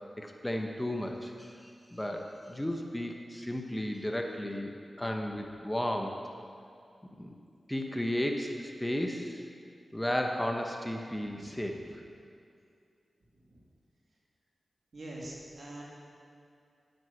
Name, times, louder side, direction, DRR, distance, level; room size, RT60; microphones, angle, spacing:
voice 1, 0.2-6.2 7.2-7.3 7.7-9.4 9.9-12.0, left 1 dB, 15° left, 3 dB, 1.0 m, -34 dB
voice 2, 11.1-11.8 13.5-13.6 14.9-15.8, right 1 dB, 65° right, -4 dB, 2.5 m, -45 dB
9.5 x 7.8 x 5.9 m, 2.4 s
cardioid pair, 45°, 0 cm